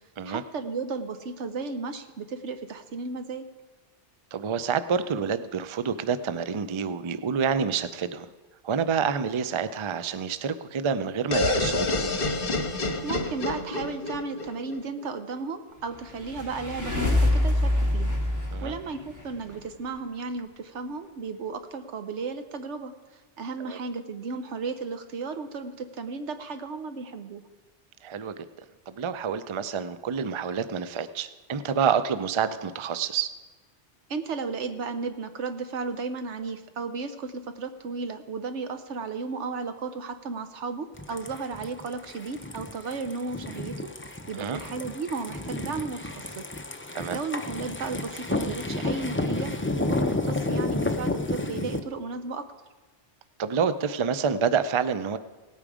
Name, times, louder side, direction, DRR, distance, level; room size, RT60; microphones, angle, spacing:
voice 1, 0.2-3.4 13.0-18.1 18.6-22.9 23.4-27.4 34.1-43.7 44.3-46.4 47.1-52.5, right 4 dB, 85° right, 9 dB, 1.2 m, -34 dB
voice 2, 4.3-8.3 8.6-12.1 18.5-18.7 23.6-23.8 28.0-28.5 28.9-33.3 44.3-44.6 46.9-47.2 53.4-55.2, right 6 dB, 40° right, 12 dB, 0.4 m, -28 dB
sound 1, 11.3-15.1, left 2 dB, 55° left, 1.3 m, -28 dB
sound 2, 15.9-19.5, left 1 dB, 15° right, 3.3 m, -25 dB
sound 3, 40.9-51.8, left 2 dB, 15° left, 0.5 m, -31 dB
17.5 x 8.7 x 4.9 m, 1.3 s
omnidirectional pair, 1.2 m